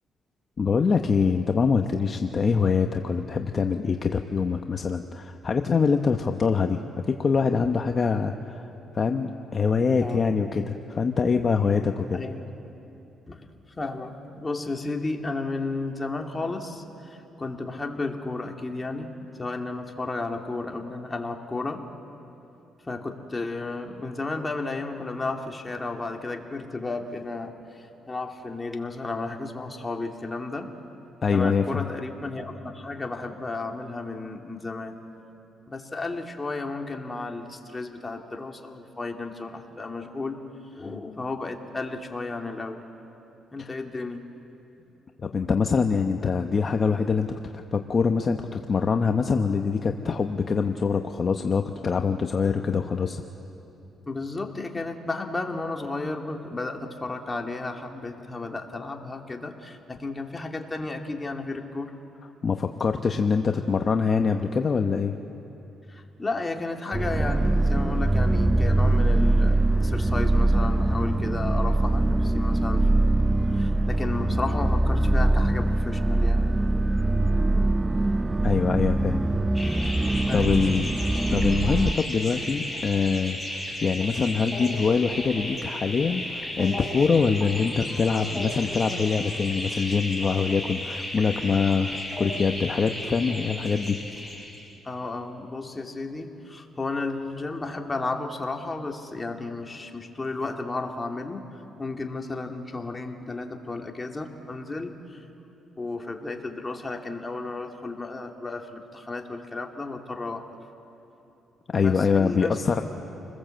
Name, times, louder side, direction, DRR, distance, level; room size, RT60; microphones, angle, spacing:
voice 1, 0.6-8.6 8.9-12.2 31.2-31.8 43.6-43.7 45.2-53.2 62.4-65.1 78.4-79.2 80.3-81.0 81.3-94.0 111.7-112.8, left 5 dB, 40° left, 5 dB, 1.0 m, -24 dB
voice 2, 9.9-10.2 12.1-12.5 13.3-13.4 13.8-21.9 22.9-30.7 31.3-35.0 35.7-40.4 40.8-42.8 43.5-44.2 54.1-61.9 65.9-73.1 73.5-76.7 80.2-80.7 94.8-101.5 101.8-105.2 105.8-110.5 111.8-112.8, left 3 dB, 20° left, 2 dB, 2.4 m, -33 dB
sound 1, 66.9-81.9, right 2 dB, 15° right, 0.6 m, -22 dB
sound 2, 79.5-94.7, left 1 dB, ahead, 6.0 m, -34 dB
28.5 x 21.0 x 7.8 m, 2.9 s
cardioid pair, 90°, 0 cm